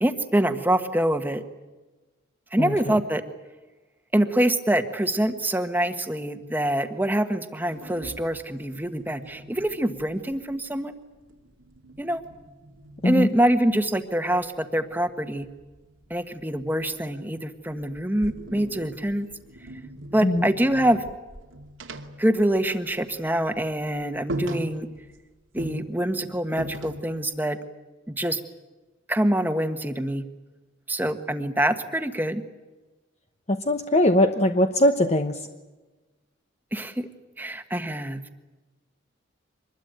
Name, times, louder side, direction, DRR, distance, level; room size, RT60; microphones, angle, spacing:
voice 1, 0.0-1.4 2.5-3.2 4.1-11.0 12.0-12.2 13.0-15.5 16.1-19.3 20.1-21.0 22.2-24.9 25.5-27.6 28.1-28.4 29.1-30.2 30.9-32.4 36.7-37.1 37.4-38.2, right 1 dB, 10° right, 8 dB, 1.4 m, -25 dB
voice 2, 2.6-3.0 13.0-13.3 20.2-20.5 33.5-35.5, left 1 dB, 35° left, 6 dB, 1.0 m, -21 dB
sound 1, 7.6-10.8 11.1-14.0 15.4-17.4 17.8-23.1 23.4-23.6 23.9-24.0 24.3-25.2 25.6-27.3, right 1 dB, 85° right, 2.5 m, -40 dB
25.0 x 21.0 x 9.0 m, 1.2 s
head